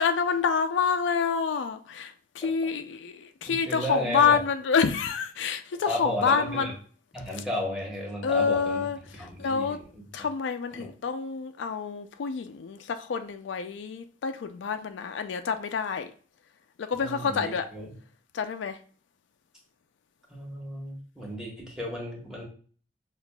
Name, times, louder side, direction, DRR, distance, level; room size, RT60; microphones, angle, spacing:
voice 1, 0.0-6.7 8.2-9.8 10.1-16.1 16.8-17.7 18.3-18.8, left 6 dB, 85° left, 0.4 m, -27 dB
voice 2, 3.4-4.4 5.9-6.7 7.1-8.9 9.2-10.0 10.7-10.9 17.0-17.9 20.3-22.4, left 1 dB, 5° right, 1.0 m, -34 dB
5.8 x 2.4 x 2.2 m
head